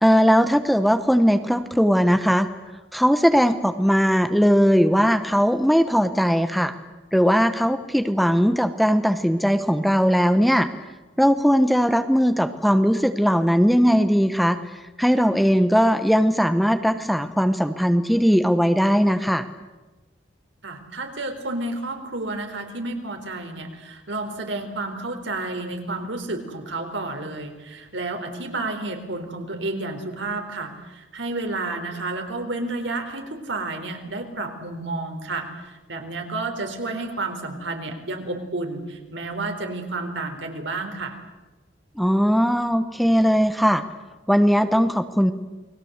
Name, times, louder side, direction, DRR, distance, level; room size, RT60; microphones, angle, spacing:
voice 1, 0.0-2.5 2.9-6.7 7.1-10.7 11.2-14.6 15.0-19.4 42.0-43.8 44.3-45.3, equal, ahead, 9 dB, 1.0 m, -19 dB
voice 2, 20.6-41.2, right 2 dB, 70° right, 5 dB, 4.2 m, -31 dB
29.5 x 21.0 x 8.2 m, 1.1 s
head